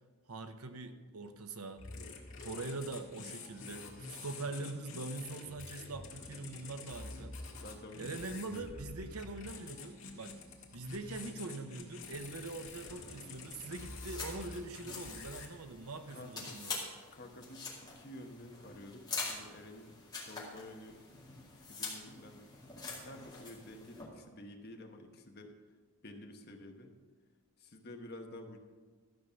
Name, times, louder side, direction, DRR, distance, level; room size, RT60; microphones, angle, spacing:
voice 1, 0.3-1.9 2.4-7.4 8.0-10.4 10.7-16.9, right 3 dB, 80° right, 8 dB, 0.9 m, -43 dB
sound 1, 1.8-15.5, left 3 dB, 65° left, 1.8 m, -48 dB
voice 2, 3.8-4.1 7.5-9.2 12.6-12.8 16.1-16.5 17.1-21.0 21.3-22.5 22.9-25.6 26.0-26.9 27.6-28.6, left 1 dB, 45° left, 4 dB, 1.1 m, -51 dB
sound 2, 12.7-24.0, left 4 dB, 15° left, 2.3 m, -45 dB
13.0 x 5.4 x 7.0 m, 1.4 s
head